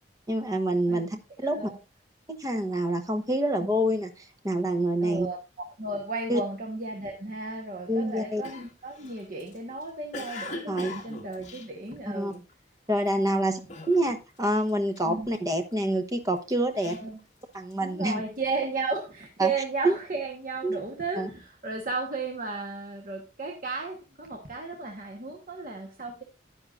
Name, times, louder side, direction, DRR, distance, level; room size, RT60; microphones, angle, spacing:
voice 1, 0.3-1.6 2.3-4.1 4.4-5.3 6.3-6.4 7.9-8.4 10.7-10.9 12.1-12.3 12.9-13.6 13.9-17.0 17.5-18.2 19.4-19.5 19.8-19.9 20.6-20.8 21.2-21.3, right 1 dB, 20° right, 5 dB, 1.0 m, -26 dB
voice 2, 0.9-1.8 3.6-3.7 5.0-5.4 5.8-12.4 13.2-13.7 15.0-15.3 16.7-17.2 17.8-26.2, right 3 dB, 45° right, 1 dB, 1.2 m, -34 dB
Cough, 8.4-12.5 13.0-13.3 13.7-14.4 14.7-15.8 16.4-17.9, left 2 dB, 40° left, 1.8 m, -42 dB
10.5 x 9.9 x 2.5 m, 0.28 s
head